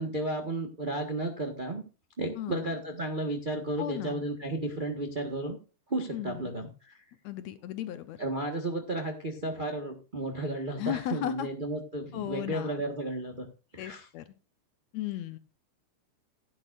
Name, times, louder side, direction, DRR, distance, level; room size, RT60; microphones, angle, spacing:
voice 1, 0.0-1.8 2.2-5.6 5.9-6.9 8.2-13.5 13.7-14.1, right 1 dB, 50° right, 3 dB, 0.5 m, -33 dB
voice 2, 2.4-2.7 3.8-4.2 6.1-6.5 7.2-8.2 10.8-11.5 12.1-12.8 13.8-14.3 14.9-15.4, left 12 dB, 75° left, 11 dB, 1.8 m, -35 dB
15.5 x 10.0 x 2.5 m, 0.33 s
omnidirectional pair, 3.5 m